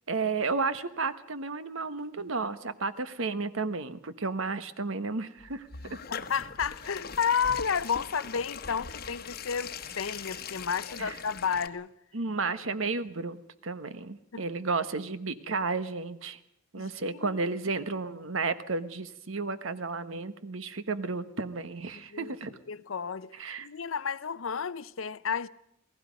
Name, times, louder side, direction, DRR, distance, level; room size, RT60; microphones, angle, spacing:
voice 1, 0.1-6.0 11.0-11.2 12.1-16.4 16.7-22.6 23.3-23.7, right 4 dB, 85° right, 1.2 m, -33 dB
sound 1, 5.4-11.7, left 6 dB, 50° left, 1.0 m, -41 dB
voice 2, 6.1-11.9 14.3-14.4 16.8-17.4 21.9-22.3 22.7-23.3 23.6-25.5, left 6 dB, 85° left, 0.7 m, -32 dB
28.0 x 18.0 x 5.2 m
head